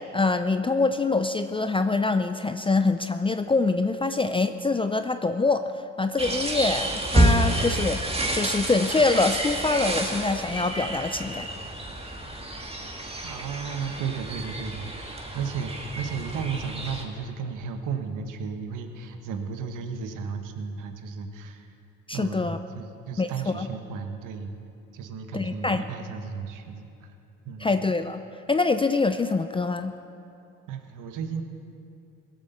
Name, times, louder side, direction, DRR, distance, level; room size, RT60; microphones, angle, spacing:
voice 1, 0.0-11.5 22.1-22.6 23.2-23.7 25.3-25.8 27.6-28.2 28.5-30.0, left 3 dB, 15° left, 9 dB, 0.5 m, -25 dB
sound 1, 6.2-17.0, right 1 dB, 20° right, 2.1 m, -28 dB
voice 2, 13.2-21.7 22.1-24.6 24.9-27.1 27.4-27.7 30.7-31.4, right 6 dB, 75° right, 6 dB, 1.2 m, -34 dB
17.5 x 8.2 x 6.9 m, 2.7 s
supercardioid pair, 80°, 32 cm